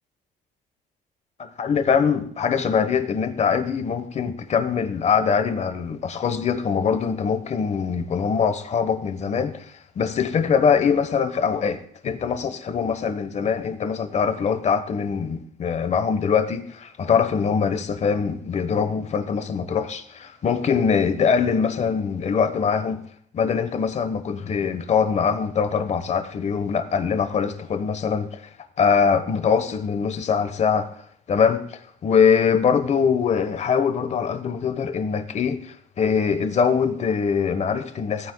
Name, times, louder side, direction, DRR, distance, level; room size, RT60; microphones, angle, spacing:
voice 1, 1.4-23.0 23.3-28.5 28.8-30.9 31.3-38.3, left 6 dB, 40° left, 1.1 m, -23 dB
18.0 x 9.4 x 2.3 m
cardioid pair, 110°, 17 cm